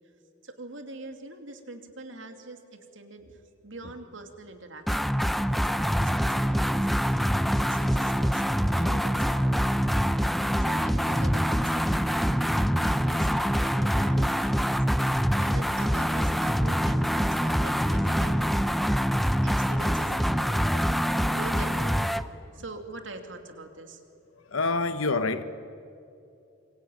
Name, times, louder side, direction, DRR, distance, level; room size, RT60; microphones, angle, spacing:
voice 1, 0.4-5.2 5.5-9.8 10.6-18.4 19.4-22.2 22.5-24.0, right 2 dB, 65° right, 2.8 m, -43 dB
sound 1, 4.9-22.3, equal, ahead, 0.6 m, -25 dB
voice 2, 24.5-25.4, left 3 dB, 90° left, 1.1 m, -26 dB
26.5 x 24.0 x 9.2 m
head